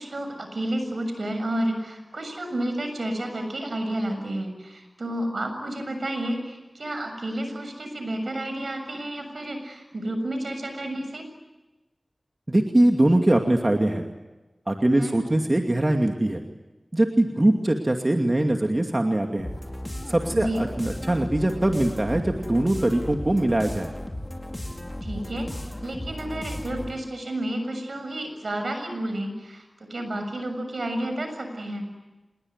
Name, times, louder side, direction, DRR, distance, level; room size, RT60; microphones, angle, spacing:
voice 1, 0.0-11.3 14.9-15.1 20.3-20.6 25.0-25.5 25.8-29.7 29.9-31.9, right 1 dB, 75° right, 6 dB, 7.0 m, -31 dB
voice 2, 12.5-14.0 14.7-16.4 16.9-19.5 20.1-23.9, right 1 dB, 35° right, 3 dB, 2.4 m, -22 dB
sound 1, 19.4-27.1, left 1 dB, 25° left, 4.2 m, -35 dB
27.5 x 21.5 x 9.7 m, 1.1 s
wide cardioid pair, 45°, 0 cm